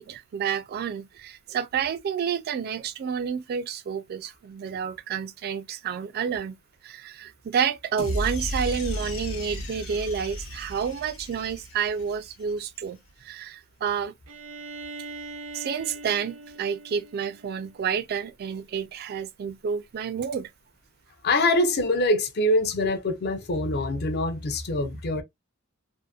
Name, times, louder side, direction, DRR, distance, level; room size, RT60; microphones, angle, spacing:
voice 1, 0.0-6.6 6.8-14.1 15.5-20.5, right 7 dB, 50° right, 0.3 m, -30 dB
sound 1, 8.0-12.3, left 1 dB, 75° left, 0.9 m, -34 dB
Bowed string instrument, 14.3-18.0, right 3 dB, 80° right, 0.7 m, -41 dB
voice 2, 21.2-25.2, left 2 dB, 50° left, 0.6 m, -24 dB
2.7 x 2.0 x 2.3 m
head